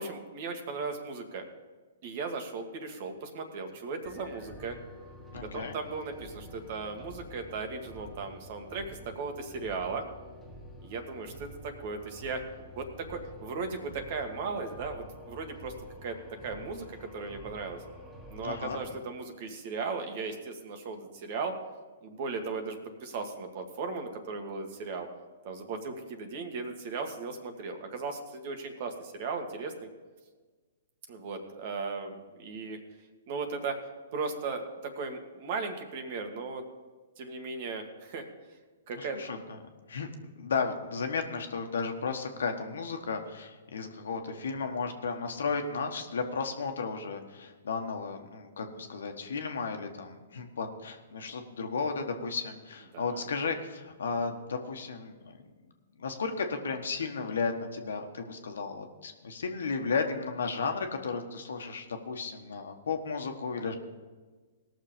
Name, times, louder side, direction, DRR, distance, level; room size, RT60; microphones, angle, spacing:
voice 1, 0.0-1.5 2.0-4.8 5.3-10.0 10.8-12.4 12.8-15.7 16.0-16.2 16.4-17.8 18.3-21.6 22.0-25.1 25.4-29.9 31.1-32.8 33.3-33.8 34.1-36.6 37.2-38.2 38.9-39.2 52.9-53.2, right 4 dB, 50° right, 5 dB, 1.8 m, -37 dB
sound 1, 4.0-19.0, left 1 dB, ahead, 2.1 m, -49 dB
voice 2, 5.3-5.8 18.4-18.8 39.0-39.6 39.9-40.1 40.3-55.4 56.0-63.7, left 4 dB, 80° left, 5 dB, 1.4 m, -34 dB
18.0 x 6.6 x 5.2 m, 1.4 s
hypercardioid pair, 130°, 0 cm